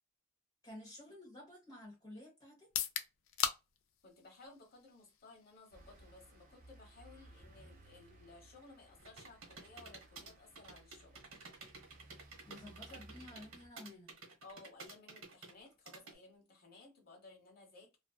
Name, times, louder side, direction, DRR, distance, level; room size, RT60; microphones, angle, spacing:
voice 1, 0.6-2.7 12.4-14.1, left 1 dB, 20° left, 1.1 m, -52 dB
sound 1, 2.6-16.4, left 9 dB, 65° left, 0.4 m, -47 dB
voice 2, 4.0-11.2 12.9-13.0 13.3-13.4 14.4-18.0, left 3 dB, 45° left, 1.0 m, -58 dB
sound 2, 5.7-13.7, right 1 dB, 40° right, 0.6 m, -60 dB
sound 3, 9.0-16.1, right 4 dB, 80° right, 1.1 m, -52 dB
2.5 x 2.3 x 2.2 m
head